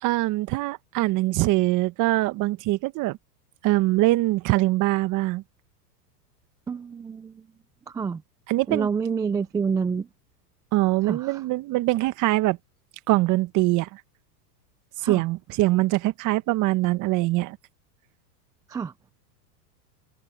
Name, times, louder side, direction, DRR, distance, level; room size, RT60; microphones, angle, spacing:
voice 1, 0.0-3.2 3.6-5.4 8.5-8.9 10.7-12.6 13.1-14.0 15.0-17.6, right 18 dB, 40° right, 1.3 m, -23 dB
voice 2, 6.7-7.4 7.9-8.2 8.7-10.1 11.0-11.4 15.0-15.2 18.7-18.9, right 6 dB, 10° right, 0.4 m, -28 dB
hypercardioid pair, 120°, 48 cm